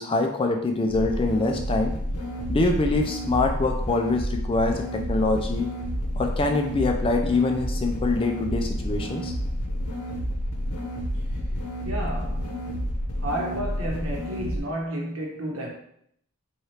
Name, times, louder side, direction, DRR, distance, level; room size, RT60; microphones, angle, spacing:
voice 1, 0.0-1.9 2.5-5.7 6.2-9.3, left 3 dB, 25° left, 3 dB, 0.3 m, -24 dB
sound 1, 0.9-14.6, equal, 80° left, 0.7 m, -30 dB
voice 2, 11.8-12.6 13.2-15.7, equal, 65° right, -1 dB, 0.9 m, -31 dB
3.2 x 2.4 x 4.2 m, 0.70 s
head